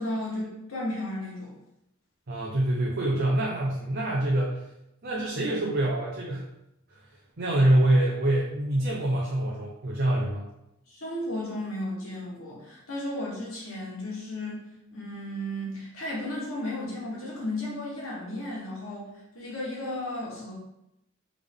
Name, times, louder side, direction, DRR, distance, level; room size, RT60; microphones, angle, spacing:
voice 1, 0.0-1.5 10.9-14.6 14.9-19.1 19.3-20.5, left 1 dB, 75° left, -4 dB, 1.6 m, -34 dB
voice 2, 2.3-4.6 5.0-6.5 7.4-10.5, right 1 dB, 50° right, -4 dB, 0.8 m, -25 dB
3.7 x 3.6 x 3.5 m, 0.85 s
head